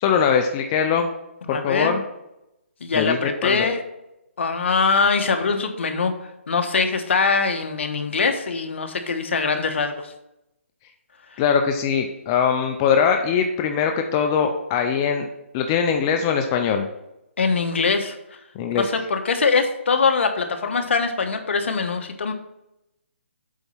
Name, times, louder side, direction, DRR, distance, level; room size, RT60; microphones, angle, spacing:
voice 1, 0.0-1.1 1.5-2.0 2.9-3.7 11.4-15.3 15.5-16.9 18.6-18.9, left 7 dB, 20° left, 4 dB, 0.4 m, -21 dB
voice 2, 1.4-1.9 2.8-3.8 4.4-6.1 6.5-10.1 17.4-18.2 18.7-22.3, left 4 dB, 65° left, 6 dB, 1.2 m, -22 dB
8.1 x 4.1 x 5.5 m, 0.88 s
hypercardioid pair, 165°, 7 cm